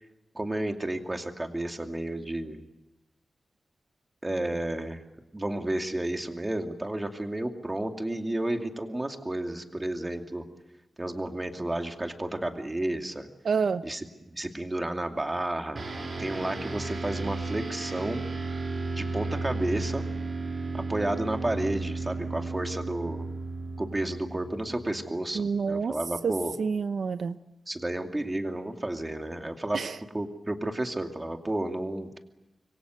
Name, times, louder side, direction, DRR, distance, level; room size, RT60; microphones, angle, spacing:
voice 1, 0.3-2.6 4.2-5.0 5.3-10.4 11.0-13.3 13.8-15.8 16.2-18.2 19.0-20.0 20.7-23.3 23.8-26.5 27.7-29.8 30.1-32.2, right 1 dB, 20° right, 4 dB, 2.5 m, -32 dB
voice 2, 13.4-13.8 25.3-25.9 26.2-26.3 26.6-27.3 29.7-29.9, right 5 dB, 80° right, 11 dB, 0.8 m, -27 dB
sound 1, 15.7-25.4, right 3 dB, 50° right, 6.6 m, -34 dB
26.5 x 23.0 x 7.8 m, 0.96 s
wide cardioid pair, 130°, 0 cm